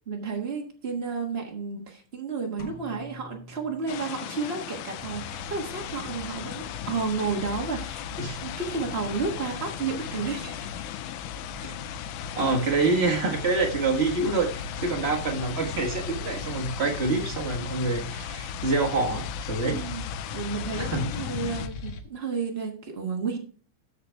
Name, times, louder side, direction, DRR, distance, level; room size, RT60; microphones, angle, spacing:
voice 1, 0.1-8.0 8.4-10.8 19.7-23.4, right 5 dB, 80° right, 1 dB, 0.5 m, -32 dB
sound 1, 2.6-4.6, left 2 dB, 45° left, 1.3 m, -45 dB
sound 2, 3.9-21.7, left 13 dB, 85° left, 2.0 m, -38 dB
sound 3, 5.0-22.0, left 3 dB, 70° left, 2.1 m, -39 dB
voice 2, 12.3-19.8 20.8-21.0, right 3 dB, 35° right, 1 dB, 1.0 m, -26 dB
13.5 x 5.8 x 3.4 m, 0.42 s
omnidirectional pair, 3.6 m